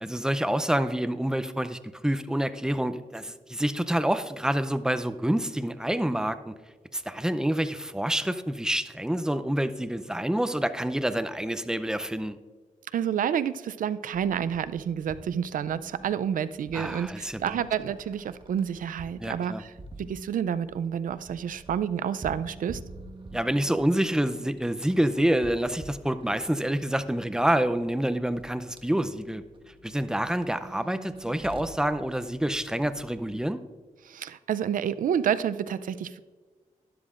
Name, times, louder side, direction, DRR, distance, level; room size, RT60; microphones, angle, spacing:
voice 1, 0.0-6.5 6.9-12.4 16.7-17.6 19.2-19.6 23.3-29.4 29.8-33.6, right 1 dB, 5° right, 11 dB, 0.5 m, -27 dB
voice 2, 12.9-19.7 20.0-22.8 34.0-36.2, right 8 dB, 80° right, 14 dB, 0.4 m, -29 dB
sound 1, 14.1-33.4, right 1 dB, 40° right, 1.2 m, -48 dB
12.5 x 10.5 x 2.5 m, 1.4 s
wide cardioid pair, 95°, 14 cm